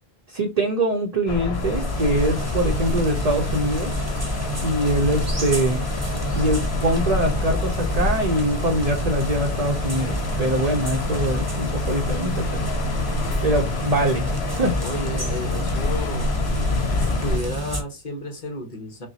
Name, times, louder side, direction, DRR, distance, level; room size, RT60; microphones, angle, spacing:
voice 1, 0.3-4.0 4.6-5.8 6.3-12.7 13.4-14.3 14.6-14.8, right 1 dB, 45° right, 0.7 m, -23 dB
sound 1, 1.3-17.4, left 2 dB, 80° left, 1.0 m, -27 dB
sound 2, 1.5-17.8, right 1 dB, 15° right, 0.9 m, -29 dB
voice 2, 5.0-5.4 14.8-16.4 16.9-19.1, left 1 dB, 50° left, 1.1 m, -33 dB
5.6 x 2.2 x 2.8 m
omnidirectional pair, 1.1 m